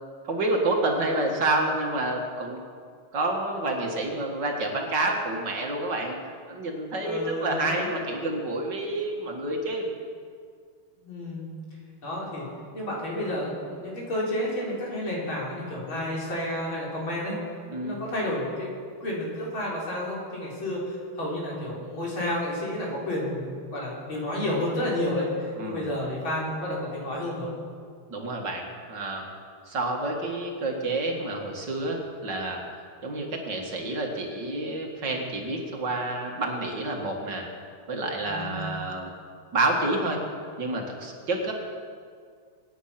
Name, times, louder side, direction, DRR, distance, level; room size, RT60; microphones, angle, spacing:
voice 1, 0.2-2.6 3.1-6.2 6.5-9.9 17.7-18.0 25.6-25.9 28.1-29.3 29.7-32.6 33.0-37.5 37.9-39.1 39.5-40.2 40.6-41.5, right 2 dB, 55° right, 1 dB, 2.4 m, -28 dB
voice 2, 7.0-7.9 11.0-11.5 12.0-12.5 12.7-17.4 17.8-18.7 19.0-27.5 38.2-38.7, left 1 dB, 65° left, -5 dB, 4.7 m, -31 dB
24.5 x 9.3 x 5.8 m, 2.1 s
omnidirectional pair, 2.3 m